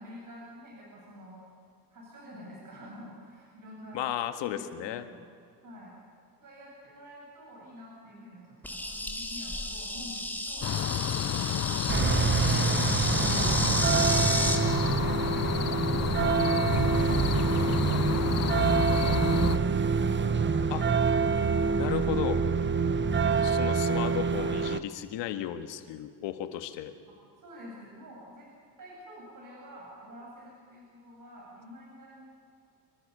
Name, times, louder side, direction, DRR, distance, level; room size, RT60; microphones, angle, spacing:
voice 1, 0.0-1.4 1.9-4.1 4.4-5.2 5.6-5.9 6.4-10.7 11.2-14.4 14.8-20.7 21.1-21.9 22.6-23.9 27.4-28.5 28.8-32.3, equal, 45° right, -4 dB, 7.9 m, -48 dB
voice 2, 3.9-5.0 11.8-12.0 20.7-20.8 21.8-22.4 23.4-26.9, left 12 dB, 85° left, 9 dB, 1.9 m, -34 dB
Insect, 8.6-14.6, left 1 dB, 5° left, 3.2 m, -32 dB
sound 1, 10.6-19.6, left 11 dB, 40° left, 0.5 m, -31 dB
sound 2, 11.9-24.8, right 5 dB, 25° right, 1.1 m, -26 dB
27.0 x 24.5 x 6.9 m, 2.5 s
cardioid pair, 110°, 42 cm